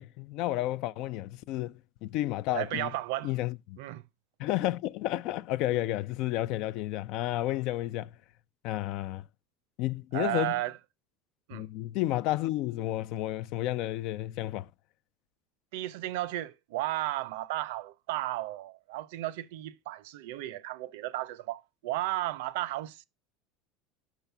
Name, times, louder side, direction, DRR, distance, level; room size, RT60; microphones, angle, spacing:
voice 1, 0.0-2.9 3.2-3.8 4.4-8.1 8.6-9.2 9.8-10.5 11.5-14.7, left 15 dB, 60° left, 0.4 m, -31 dB
voice 2, 2.5-3.3 3.8-4.0 10.1-10.8 11.5-11.7 15.7-23.0, right 16 dB, 80° right, 0.5 m, -34 dB
5.6 x 3.9 x 5.7 m
supercardioid pair, 125°, 0 cm